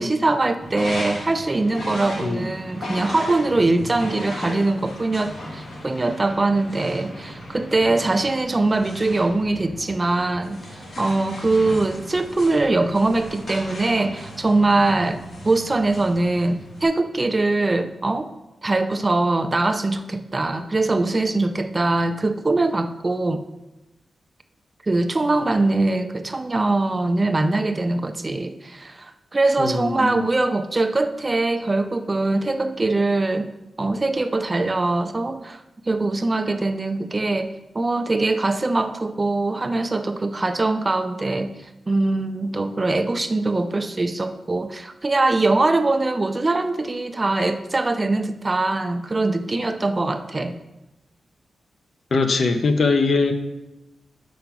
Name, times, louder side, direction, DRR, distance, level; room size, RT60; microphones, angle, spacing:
voice 1, 0.0-18.3 18.6-23.4 24.8-33.5 33.8-41.6 41.9-50.6, right 2 dB, 25° right, 8 dB, 0.4 m, -22 dB
sound 1, 0.6-16.8, equal, 70° left, 1.9 m, -36 dB
voice 2, 29.6-30.3 52.1-53.3, left 3 dB, 50° left, 7 dB, 0.7 m, -21 dB
5.8 x 5.2 x 5.9 m, 0.95 s
wide cardioid pair, 150°, 0 cm